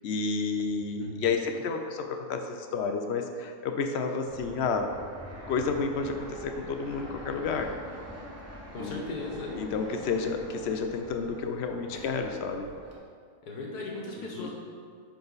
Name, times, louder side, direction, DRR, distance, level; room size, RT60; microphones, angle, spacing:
voice 1, 0.0-4.9 5.5-7.7 8.8-9.0 9.5-12.6 14.2-14.5, left 5 dB, 65° left, 5 dB, 0.7 m, -31 dB
Fixed-wing aircraft airplane, 4.3-13.0, equal, 10° right, 0.9 m, -45 dB
voice 2, 8.7-9.5 11.9-12.0 13.4-14.5, left 2 dB, 90° left, -2 dB, 1.7 m, -37 dB
10.0 x 3.9 x 4.0 m, 2.1 s
omnidirectional pair, 1.6 m